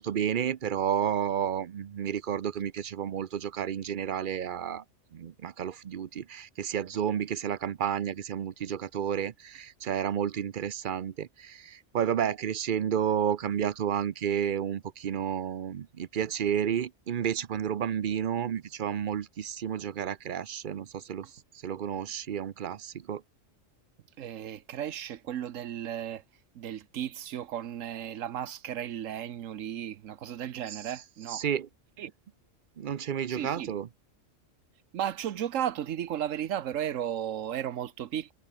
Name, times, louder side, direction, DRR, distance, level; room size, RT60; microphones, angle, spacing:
voice 1, 0.0-4.8 5.1-21.3 21.6-23.2 30.7-30.9 31.3-31.7 32.8-33.9, right 9 dB, 50° right, 0.7 m, -31 dB
voice 2, 24.2-26.2 26.5-31.4 32.0-32.1 33.3-33.7 34.9-38.3, right 10 dB, 80° right, 1.2 m, -34 dB
omnidirectional pair, 1.3 m